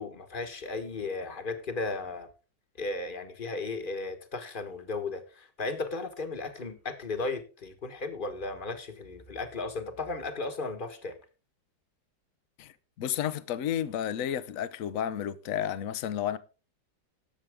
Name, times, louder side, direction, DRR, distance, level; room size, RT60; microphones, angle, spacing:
voice 1, 0.0-2.3 2.8-11.2, left 3 dB, 30° left, 1.4 m, -35 dB
voice 2, 12.6-16.4, left 10 dB, 60° left, 1.0 m, -32 dB
19.0 x 7.3 x 3.5 m
omnidirectional pair, 1.9 m